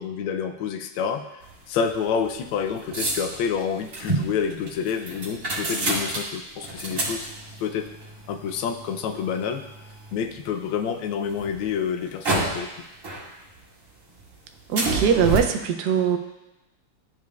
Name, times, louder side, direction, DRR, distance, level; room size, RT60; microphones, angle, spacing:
voice 1, 0.0-1.4 1.7-7.3 7.6-7.9 8.3-9.6 10.1-12.7, left 7 dB, 75° left, 6 dB, 1.3 m, -28 dB
sound 1, 1.4-10.6 11.1-12.8 13.0-13.8 14.1-15.4, right 2 dB, 40° right, 2.2 m, -30 dB
voice 2, 14.7-16.2, right 7 dB, 80° right, 5 dB, 0.9 m, -21 dB
11.5 x 5.0 x 2.3 m, 1.0 s
omnidirectional pair, 2.4 m